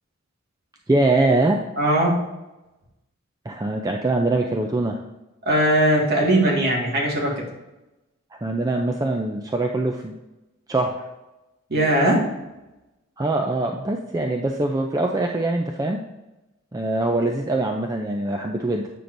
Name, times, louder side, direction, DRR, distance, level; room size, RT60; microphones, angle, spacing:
voice 1, 0.9-1.6 3.5-5.0 8.4-10.1 10.7-11.0 13.2-16.0 16.7-18.9, right 2 dB, 15° right, 2 dB, 0.4 m, -23 dB
voice 2, 1.8-2.1 5.5-7.4 11.7-12.3, right 1 dB, 50° right, -3 dB, 1.8 m, -19 dB
8.3 x 6.0 x 2.6 m, 1.0 s
head